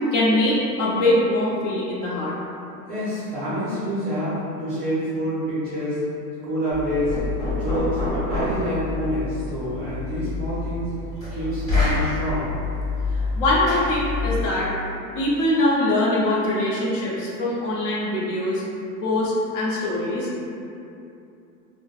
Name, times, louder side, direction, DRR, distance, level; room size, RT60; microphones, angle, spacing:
voice 1, 0.1-2.3 13.1-14.7 15.1-18.6 19.0-20.5, left 1 dB, 50° left, -6 dB, 0.7 m, -22 dB
voice 2, 2.9-6.0 6.4-7.2 7.5-10.9 11.3-12.5, equal, 25° right, -10 dB, 0.4 m, -27 dB
Knock, 6.7-14.6, left 3 dB, 5° left, 1.4 m, -27 dB
3.2 x 2.1 x 2.3 m, 2.7 s
hypercardioid pair, 135°, 49 cm